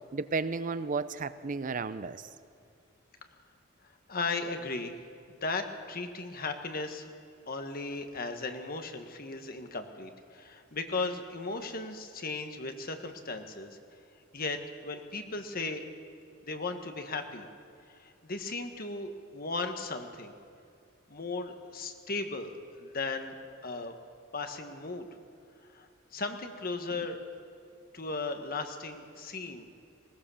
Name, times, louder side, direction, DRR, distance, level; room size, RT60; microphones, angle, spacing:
voice 1, 0.1-2.3, right 4 dB, 40° right, 14 dB, 0.5 m, -33 dB
voice 2, 3.8-4.9 5.3-7.1 7.5-13.8 14.3-15.8 16.4-17.4 17.9-20.3 21.1-23.3 23.6-23.9 24.3-25.1 25.6-27.2 27.9-29.6, left 3 dB, 45° left, 6 dB, 1.6 m, -36 dB
20.0 x 19.0 x 7.1 m, 2.4 s
head